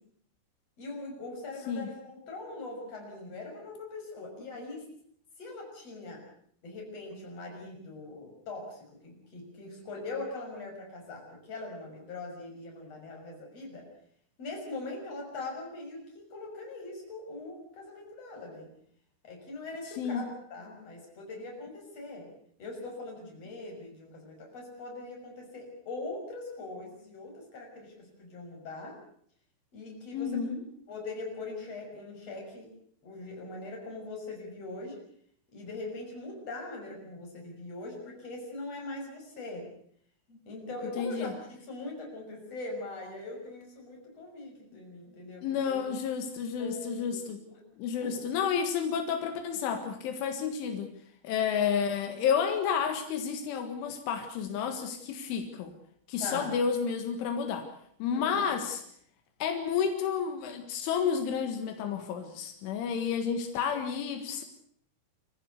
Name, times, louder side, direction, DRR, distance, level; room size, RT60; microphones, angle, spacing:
voice 1, 0.8-4.9 5.4-6.2 6.6-13.9 14.4-18.7 19.2-22.3 22.6-29.0 29.7-30.4 30.9-32.7 33.0-35.0 35.5-39.7 40.3-45.9 46.6-47.6 48.0-48.3 56.2-56.5 58.1-58.6, left 2 dB, 30° left, 1 dB, 7.2 m, -41 dB
voice 2, 30.1-30.6 41.0-41.3 45.4-47.4 47.8-50.9 51.2-55.7 56.1-57.7 58.0-58.8 59.4-64.4, left 7 dB, 85° left, 6 dB, 4.2 m, -31 dB
26.5 x 15.0 x 8.3 m, 0.64 s
omnidirectional pair, 5.4 m